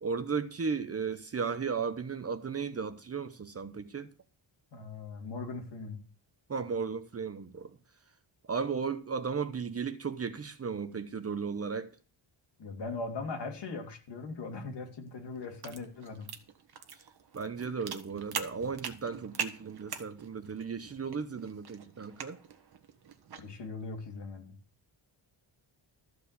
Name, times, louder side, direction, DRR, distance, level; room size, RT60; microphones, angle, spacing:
voice 1, 0.0-4.1 6.5-7.8 8.5-11.9 17.3-22.4, right 5 dB, 30° right, 0.8 m, -35 dB
voice 2, 4.7-6.0 12.6-16.3 23.4-24.5, left 3 dB, 60° left, 2.9 m, -40 dB
sound 1, 15.1-23.5, right 7 dB, 55° right, 1.5 m, -43 dB
14.0 x 5.0 x 8.3 m
wide cardioid pair, 170°, 47 cm